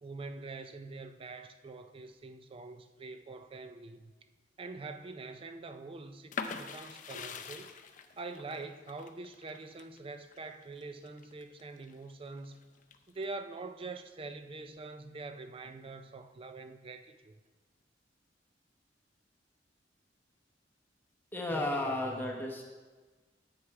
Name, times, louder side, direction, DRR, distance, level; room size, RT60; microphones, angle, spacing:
voice 1, 0.0-4.1 4.6-7.7 8.2-12.6 13.1-17.4 21.5-22.3, right 3 dB, 30° right, 9 dB, 0.4 m, -44 dB
sound 1, 6.3-11.9 12.4-13.2, left 5 dB, 45° left, 0.5 m, -43 dB
voice 2, 21.3-22.6, left 2 dB, 10° left, -1 dB, 0.8 m, -33 dB
8.1 x 6.6 x 4.6 m, 1.3 s
head